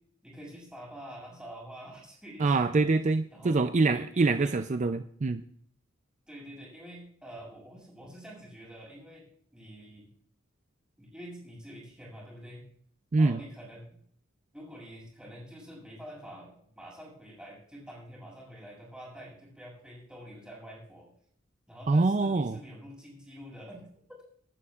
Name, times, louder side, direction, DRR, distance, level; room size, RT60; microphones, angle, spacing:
voice 1, 0.2-2.9 3.3-3.6 3.9-4.6 6.3-9.3 9.5-10.1 11.0-12.7 13.2-13.9 14.5-21.1 21.7-24.2, equal, 5° right, -4 dB, 6.8 m, -47 dB
voice 2, 2.4-5.4 13.1-13.4 21.9-22.6, right 3 dB, 35° right, 9 dB, 0.4 m, -25 dB
25.5 x 11.5 x 2.4 m, 0.63 s
head